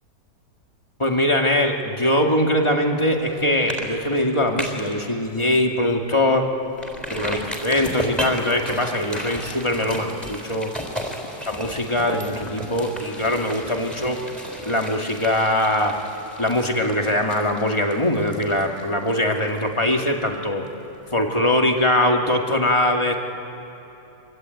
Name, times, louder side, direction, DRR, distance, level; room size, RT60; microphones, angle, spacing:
voice 1, 1.0-6.5 7.1-10.7 11.4-14.2 14.7-16.0 16.4-20.6 21.1-23.1, left 1 dB, 15° left, 2 dB, 1.9 m, -22 dB
sound 1, 3.1-3.3 3.7-3.9 4.2-4.9 5.4-5.5 5.9-6.0 6.8-20.3 20.7-20.8, equal, ahead, 4.1 m, -34 dB
25.5 x 24.0 x 9.2 m, 2.9 s
omnidirectional pair, 1.9 m